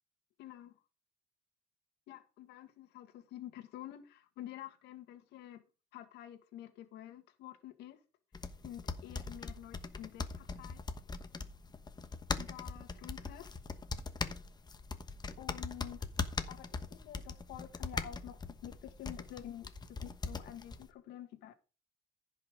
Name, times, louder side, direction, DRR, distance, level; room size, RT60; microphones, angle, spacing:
voice 1, 0.4-0.8 2.1-5.6 5.9-8.0 8.6-10.9 12.4-13.5 15.4-16.0 16.5-21.6, left 12 dB, 85° left, 1.8 m, -49 dB
sound 1, 8.3-20.9, left 4 dB, 25° left, 1.1 m, -41 dB
15.0 x 5.7 x 5.1 m
cardioid pair, 110°, 17 cm